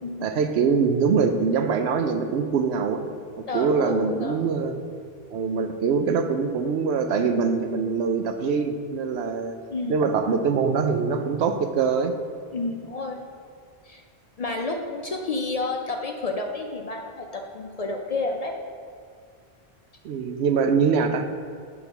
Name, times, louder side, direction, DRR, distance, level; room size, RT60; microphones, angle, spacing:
voice 1, 0.2-3.1 3.4-4.8 5.3-9.6 9.9-12.1 20.0-21.3, right 5 dB, 90° right, 7 dB, 0.9 m, -23 dB
voice 2, 3.5-4.4 9.7-10.2 12.5-13.2 13.8-14.0 14.4-18.6, left 3 dB, 50° left, 2 dB, 0.5 m, -30 dB
8.0 x 3.7 x 5.7 m, 2.1 s
omnidirectional pair, 1.1 m